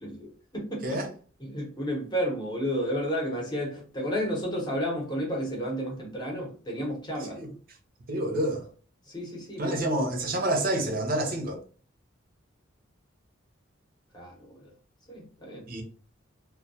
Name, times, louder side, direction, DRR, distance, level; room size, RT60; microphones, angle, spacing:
voice 1, 0.0-1.0 1.4-7.4 9.1-9.8 14.1-14.7 15.1-15.7, equal, 20° left, 0.8 m, -32 dB
voice 2, 8.1-8.7 9.6-11.6 15.7-15.8, right 1 dB, 45° right, 0.6 m, -28 dB
2.2 x 2.2 x 2.6 m
head